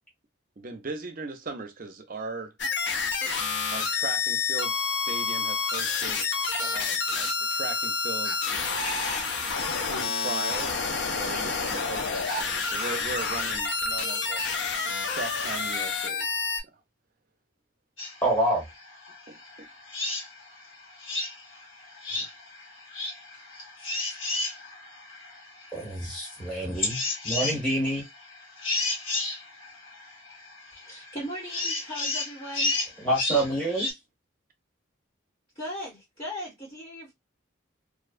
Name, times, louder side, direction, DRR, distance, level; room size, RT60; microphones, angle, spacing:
voice 1, 0.6-2.5 3.7-6.3 6.6-8.4 9.8-14.4 15.1-16.3 16.7-16.8 19.3-19.7 22.1-22.3, right 3 dB, 45° right, 0.5 m, -38 dB
sound 1, 2.6-16.6, left 4 dB, 60° left, 0.5 m, -28 dB
sound 2, 18.0-33.9, left 2 dB, 75° left, 1.3 m, -33 dB
voice 2, 18.2-18.6 25.7-28.0 33.0-33.9, right 1 dB, 5° left, 1.1 m, -28 dB
voice 3, 30.9-32.7 35.5-37.1, equal, 25° left, 1.1 m, -38 dB
2.5 x 2.2 x 2.3 m
head